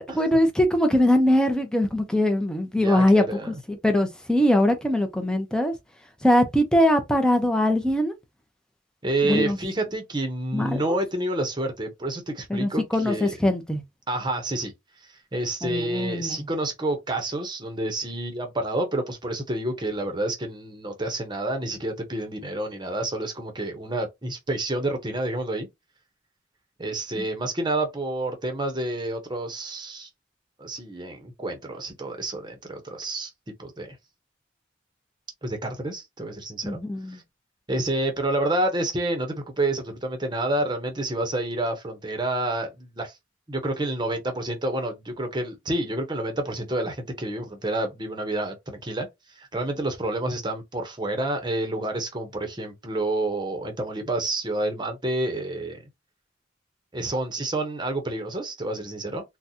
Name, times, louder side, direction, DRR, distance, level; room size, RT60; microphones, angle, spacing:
voice 1, 0.2-3.5 3.8-5.7 6.2-8.1 9.2-9.6 10.5-11.0 12.5-13.8 15.6-16.4 27.2-27.3 36.6-37.2, left 1 dB, 5° left, 0.7 m, -22 dB
voice 2, 2.8-3.6 9.0-13.4 14.1-14.7 15.3-25.7 26.8-30.1 30.6-33.3 33.6-34.0 35.4-36.8 37.1-37.2 37.7-43.2 43.5-55.8 56.9-59.2, right 1 dB, 25° right, 0.9 m, -29 dB
3.9 x 2.3 x 2.8 m
head